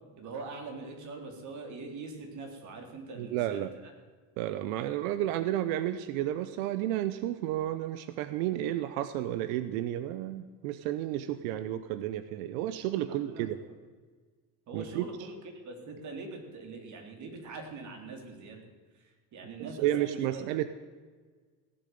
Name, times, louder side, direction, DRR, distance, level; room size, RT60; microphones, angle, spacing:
voice 1, 0.2-3.7 13.1-13.5 14.7-15.3 15.7-18.6 19.3-20.4, right 3 dB, 45° right, 3 dB, 3.8 m, -43 dB
voice 2, 3.2-3.7 4.4-13.6 14.7-15.3 19.6-20.7, right 12 dB, 90° right, 12 dB, 0.9 m, -32 dB
17.0 x 8.0 x 9.4 m, 1.5 s
cardioid pair, 140°, 40 cm